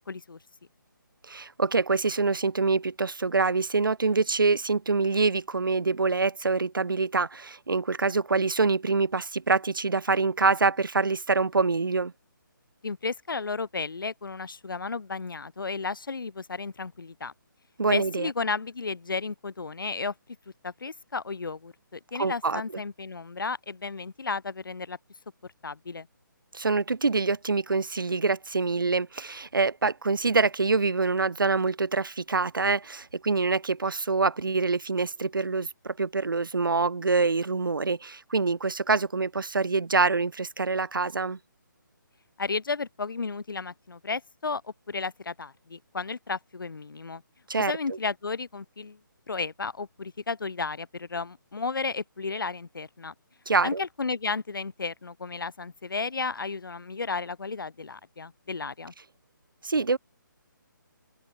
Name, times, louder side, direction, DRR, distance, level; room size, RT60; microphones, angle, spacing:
voice 1, 0.1-0.4 12.8-17.3 17.9-20.1 20.6-25.0 25.6-26.1 42.4-47.2 47.6-49.0 49.3-53.1 53.6-58.9, left 4 dB, 75° left, 1.5 m, -33 dB
voice 2, 1.3-12.1 17.8-18.3 22.2-22.6 26.5-41.4 47.5-47.7 53.5-53.8 59.6-60.0, right 4 dB, 75° right, 3.9 m, -25 dB
hypercardioid pair, 180°, 11 cm